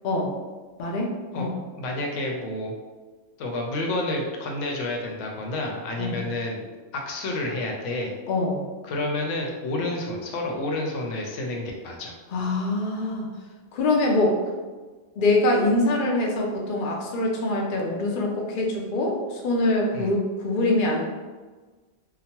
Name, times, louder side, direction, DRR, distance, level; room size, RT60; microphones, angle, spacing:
voice 1, 0.8-1.1 1.3-1.6 6.0-6.2 8.3-8.6 12.3-13.3 13.7-14.4 15.2-21.1, left 2 dB, 60° left, -1 dB, 0.6 m, -24 dB
voice 2, 1.8-2.7 3.4-6.6 6.9-8.1 8.8-12.1 19.9-20.1, left 2 dB, 85° left, 0 dB, 0.9 m, -29 dB
2.9 x 2.1 x 2.8 m, 1.3 s
omnidirectional pair, 1.2 m